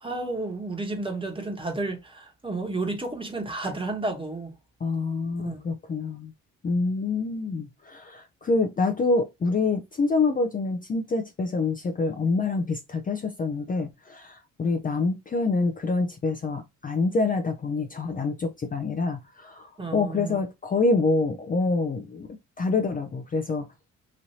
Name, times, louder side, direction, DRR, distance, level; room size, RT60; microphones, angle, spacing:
voice 1, 0.0-4.5 5.4-5.6 19.8-20.4, right 2 dB, 15° right, 1.1 m, -31 dB
voice 2, 4.8-6.3 6.6-22.3 22.6-23.7, left 3 dB, 30° left, 0.5 m, -26 dB
3.1 x 2.6 x 2.7 m
cardioid pair, 90°, 30 cm